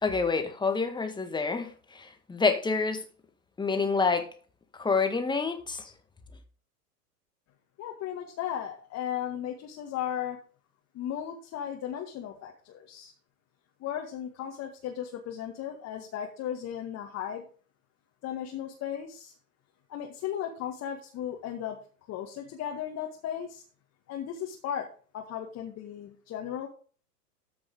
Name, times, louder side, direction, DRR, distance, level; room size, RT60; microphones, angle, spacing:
voice 1, 0.0-3.0 3.6-4.3 4.8-5.9, left 4 dB, 10° left, 1.7 m, -28 dB
voice 2, 7.8-10.4 10.9-13.1 13.8-17.4 18.2-19.3 19.9-21.8 22.1-23.6 24.1-24.9 25.1-26.7, left 10 dB, 35° left, 1.9 m, -36 dB
14.0 x 6.1 x 3.7 m
figure-of-eight pair, 95°, 47 cm